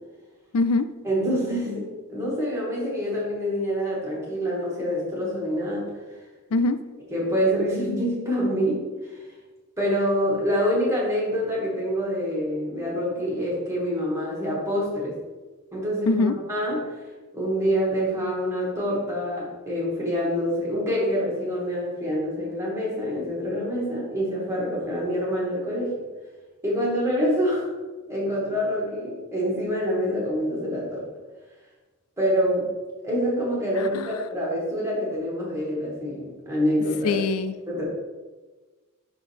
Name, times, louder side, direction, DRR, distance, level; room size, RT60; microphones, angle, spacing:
voice 1, 0.5-0.9 6.5-6.8 16.1-16.3 33.8-34.1 37.0-37.5, left 3 dB, 80° left, 12 dB, 0.4 m, -23 dB
voice 2, 1.0-5.9 7.1-9.1 9.8-15.1 15.7-16.8 17.3-26.0 26.6-27.7 28.1-31.1 32.2-32.7 33.0-37.2 37.7-37.8, equal, 15° right, -5 dB, 2.1 m, -26 dB
10.5 x 3.8 x 3.5 m, 1.3 s
head